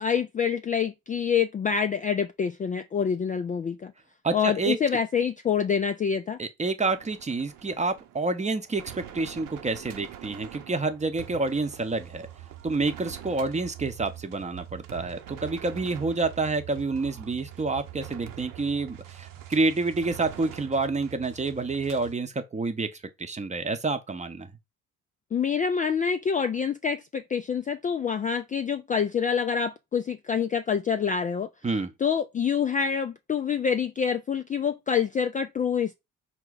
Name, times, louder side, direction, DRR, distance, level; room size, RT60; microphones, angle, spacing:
voice 1, 0.0-3.9 4.3-6.4 25.3-31.5 32.0-35.9, left 7 dB, 25° left, 0.3 m, -26 dB
voice 2, 4.2-4.8 6.4-12.3 12.6-22.9 23.2-24.5 31.6-31.9, right 3 dB, 20° right, 0.7 m, -28 dB
sound 1, 6.8-22.1, right 12 dB, 60° right, 0.8 m, -44 dB
4.7 x 2.2 x 3.9 m
hypercardioid pair, 60°, 36 cm